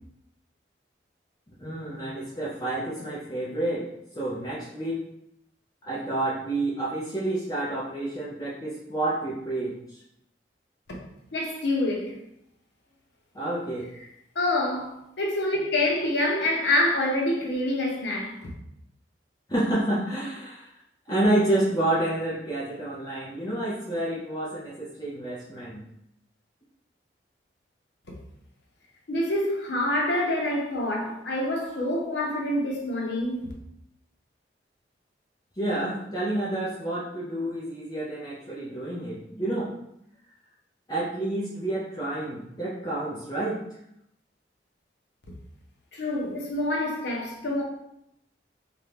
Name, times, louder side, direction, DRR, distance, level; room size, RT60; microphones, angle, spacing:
voice 1, 1.6-3.8 4.1-5.0 5.8-10.0 13.3-13.8 19.5-20.7 21.1-25.8 35.6-39.7 40.9-43.6, right 1 dB, 20° left, 0.5 m, -29 dB
voice 2, 11.3-12.1 14.4-18.3 29.1-33.5 45.9-47.6, left 1 dB, 75° left, 0.7 m, -26 dB
2.6 x 2.1 x 3.2 m
head